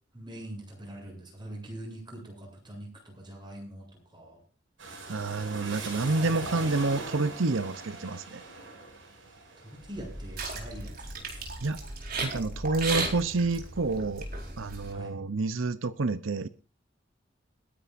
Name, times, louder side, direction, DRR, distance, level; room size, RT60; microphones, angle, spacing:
voice 1, 0.1-4.4 9.6-11.4 12.1-12.3 14.9-15.2, right 1 dB, 25° right, 0 dB, 8.0 m, -43 dB
sound 1, 4.8-12.4 12.9-13.7, right 3 dB, 70° right, 6.7 m, -42 dB
voice 2, 5.1-8.4 11.6-11.8 12.2-14.3 14.6-16.5, right 3 dB, 90° right, 12 dB, 0.8 m, -29 dB
sound 2, 9.9-14.9, right 3 dB, 50° right, 4.4 m, -36 dB
30.0 x 10.0 x 2.6 m, 0.35 s
head